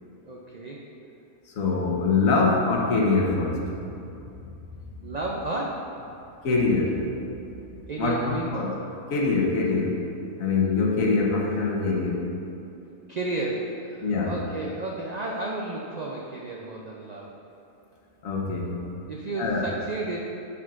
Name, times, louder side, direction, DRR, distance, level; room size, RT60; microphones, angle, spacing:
voice 1, 0.2-0.9 5.0-6.0 7.9-8.5 13.1-17.4 19.1-20.2, right 2 dB, 90° right, -2 dB, 0.3 m, -32 dB
voice 2, 1.5-3.6 6.4-7.1 7.7-8.7 9.1-10.0 10.4-12.2 14.0-14.3 18.2-18.8 19.4-19.7, left 3 dB, 75° left, -1 dB, 1.3 m, -24 dB
9.5 x 6.0 x 2.4 m, 2.7 s
omnidirectional pair, 1.5 m